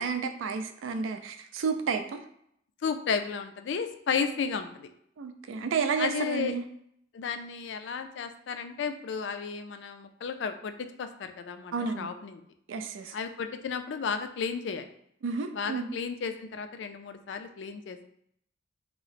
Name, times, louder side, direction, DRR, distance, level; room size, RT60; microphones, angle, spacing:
voice 1, 0.0-2.2 5.2-6.6 11.7-12.1 12.7-13.1 15.2-15.9, right 5 dB, 90° right, 8 dB, 0.4 m, -31 dB
voice 2, 2.8-4.9 6.0-6.5 7.1-12.4 13.1-14.9 15.5-18.1, left 6 dB, 65° left, 8 dB, 0.3 m, -33 dB
2.9 x 2.0 x 4.0 m, 0.70 s
head